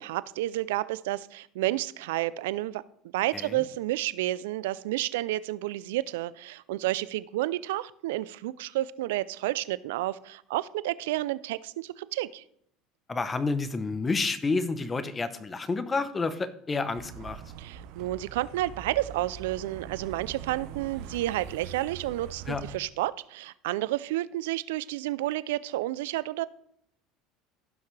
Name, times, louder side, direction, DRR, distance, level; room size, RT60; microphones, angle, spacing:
voice 1, 0.0-2.8 3.1-12.4 17.6-26.5, right 16 dB, 85° right, 18 dB, 0.3 m, -31 dB
voice 2, 3.3-3.6 13.1-17.4 22.5-22.6, left 3 dB, 20° left, 13 dB, 0.8 m, -29 dB
sound 1, 17.0-22.8, right 8 dB, 70° right, 0.8 m, -43 dB
15.5 x 5.8 x 3.3 m, 0.68 s
supercardioid pair, 115°, 0 cm